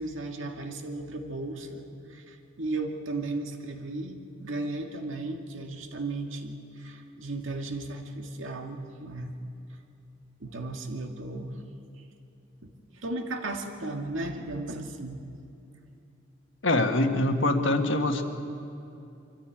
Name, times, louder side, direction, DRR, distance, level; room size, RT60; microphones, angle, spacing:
voice 1, 0.0-9.4 10.4-11.6 12.6-15.2, right 2 dB, 70° right, 3 dB, 2.1 m, -35 dB
voice 2, 16.6-18.2, left 2 dB, 65° left, 5 dB, 1.6 m, -24 dB
25.0 x 14.0 x 8.6 m, 2.7 s
head